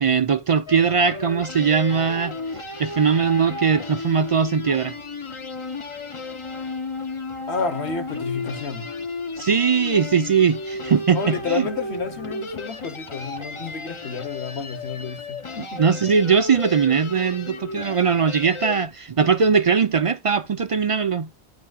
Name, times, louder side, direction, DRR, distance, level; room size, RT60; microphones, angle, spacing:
voice 1, 0.0-5.0 9.4-11.7 15.8-21.3, right 6 dB, 60° right, 0.3 m, -20 dB
sound 1, 0.7-18.9, left 2 dB, 30° left, 0.7 m, -34 dB
voice 2, 7.5-8.9 11.1-15.8, left 5 dB, 70° left, 1.4 m, -30 dB
9.4 x 5.7 x 2.3 m
omnidirectional pair, 1.1 m